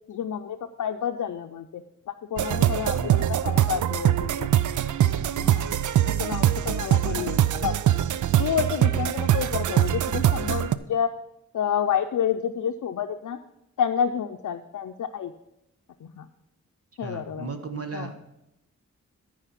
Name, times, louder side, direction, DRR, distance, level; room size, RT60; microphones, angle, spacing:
voice 1, 0.1-4.5 5.2-5.7 6.0-7.7 8.4-11.1 11.5-13.4 13.8-15.3 16.0-16.3 17.0-17.6 17.9-18.1, left 8 dB, 85° left, 4 dB, 0.6 m, -29 dB
sound 1, 2.4-10.8, right 11 dB, 85° right, 0.5 m, -23 dB
voice 2, 2.9-3.3 6.5-6.7 7.1-7.3 17.0-18.2, right 3 dB, 50° right, 7 dB, 1.3 m, -36 dB
13.5 x 4.9 x 5.8 m, 0.85 s
cardioid pair, 75°, 29 cm